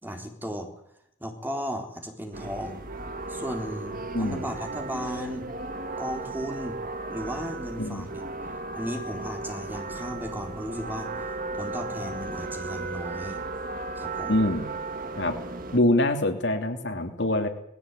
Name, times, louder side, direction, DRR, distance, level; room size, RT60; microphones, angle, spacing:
voice 1, 0.0-0.7 1.2-2.8 3.3-5.5 6.0-6.8 7.1-8.2 8.7-11.1 11.5-13.4 14.0-14.4, equal, 10° right, 3 dB, 3.7 m, -35 dB
sound 1, 2.3-15.8, right 3 dB, 45° right, 1.9 m, -35 dB
voice 2, 4.1-4.5 7.8-8.1 14.3-14.7 15.2-15.3 15.7-17.5, left 1 dB, 60° left, 6 dB, 2.9 m, -24 dB
20.0 x 16.5 x 9.1 m, 0.75 s
head